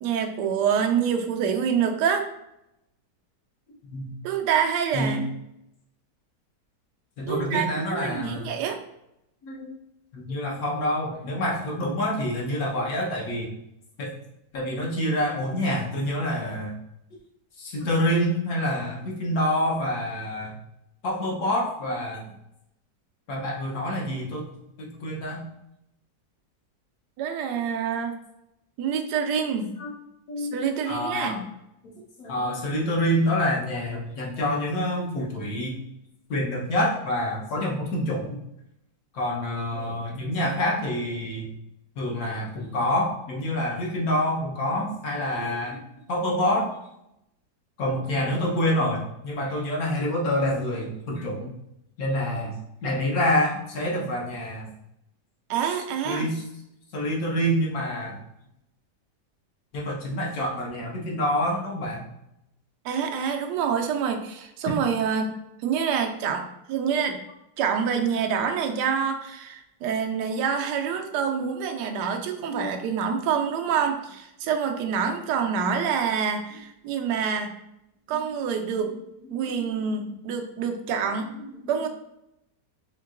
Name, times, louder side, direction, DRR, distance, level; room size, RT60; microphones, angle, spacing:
voice 1, 0.0-2.3 4.2-5.3 7.2-8.8 27.2-28.2 28.8-29.8 30.4-31.4 55.5-56.3 62.8-67.2 67.6-77.5 78.1-79.0 79.3-81.3 81.7-81.9, right 7 dB, 75° right, 4 dB, 1.1 m, -26 dB
voice 2, 7.2-8.5 9.4-9.7 10.1-13.5 14.0-14.1 14.5-16.8 17.6-20.6 21.0-22.3 23.3-24.5 24.8-25.4 29.8-29.9 30.3-30.6 30.9-31.4 32.2-35.8 36.3-38.4 39.1-41.5 42.0-45.8 46.1-46.7 47.8-51.5 52.0-52.6 52.8-54.7 56.0-56.4 56.9-58.2 59.7-62.0 71.7-71.8 72.5-72.7 78.1-78.3 79.3-79.7 81.4-81.8, left 1 dB, 60° left, -2 dB, 1.3 m, -27 dB
4.5 x 3.6 x 2.4 m, 0.83 s
omnidirectional pair, 1.9 m